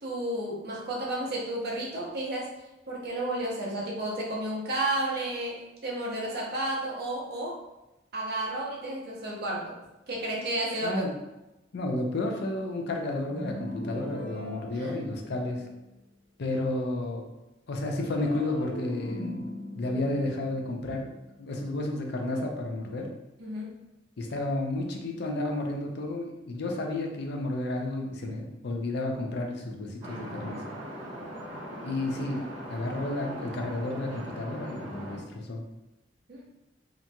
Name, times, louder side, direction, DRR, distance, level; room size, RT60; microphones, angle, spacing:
voice 1, 0.0-2.5 2.9-7.6 8.1-9.7 10.1-11.0 14.7-14.9 23.4-23.8 36.3-36.4, right 1 dB, 60° right, -3 dB, 0.7 m, -32 dB
voice 2, 11.7-15.6 16.4-17.3 17.7-19.4 19.8-23.1 24.2-30.6 31.8-32.4 32.7-35.6, left 2 dB, 60° left, 2 dB, 0.5 m, -32 dB
sound 1, 13.3-15.7 18.1-21.4, equal, ahead, 0.7 m, -40 dB
sound 2, 30.0-35.2, equal, 25° right, 1.1 m, -40 dB
2.9 x 2.6 x 2.2 m, 0.97 s
head